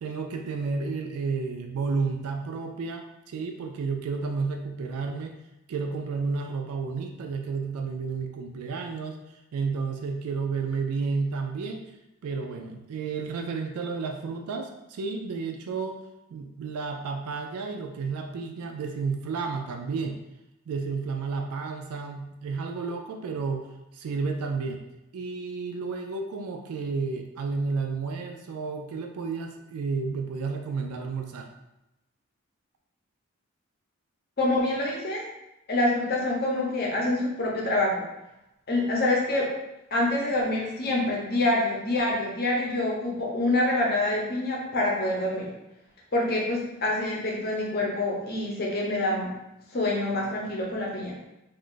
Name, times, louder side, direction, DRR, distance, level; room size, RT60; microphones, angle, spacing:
voice 1, 0.0-5.3 5.7-9.2 9.5-11.8 12.2-16.0 16.3-20.2 20.7-23.7 23.9-24.8 25.1-31.5, right 4 dB, 80° right, 3 dB, 0.3 m, -31 dB
voice 2, 34.4-35.2 35.7-38.0 38.7-39.5 39.9-45.5 46.1-49.3 49.7-51.1, left 2 dB, 45° left, -3 dB, 0.7 m, -26 dB
2.5 x 2.4 x 3.6 m, 0.91 s
head